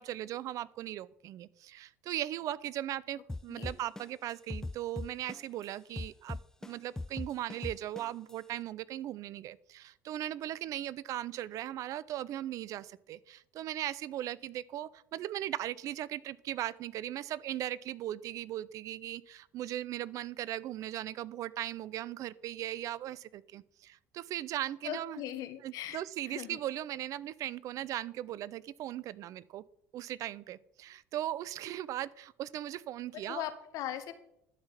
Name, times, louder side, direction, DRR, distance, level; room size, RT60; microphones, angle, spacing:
voice 1, 0.0-25.2 25.6-29.6 29.9-33.4, right 13 dB, 60° right, 20 dB, 0.6 m, -38 dB
sound 1, 3.3-5.6 6.0-8.3, left 2 dB, 10° left, 0.4 m, -39 dB
voice 2, 24.8-26.6 33.1-34.1, left 11 dB, 65° left, 10 dB, 1.5 m, -40 dB
11.5 x 5.8 x 8.2 m, 0.77 s
hypercardioid pair, 70°, 7 cm